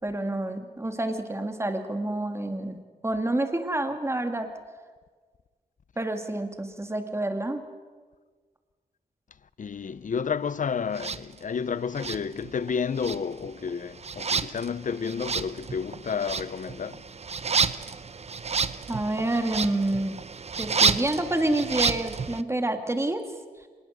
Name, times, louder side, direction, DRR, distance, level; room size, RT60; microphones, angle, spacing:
voice 1, 0.0-4.5 6.0-7.6 18.9-20.2 20.6-23.2, right 1 dB, 15° right, 2.4 m, -28 dB
voice 2, 9.6-17.0, left 6 dB, 55° left, 0.7 m, -31 dB
sound 1, 10.9-11.2 11.9-12.7 13.0-22.4, right 5 dB, 45° right, 0.8 m, -30 dB
26.0 x 20.0 x 8.1 m
wide cardioid pair, 105°, 16 cm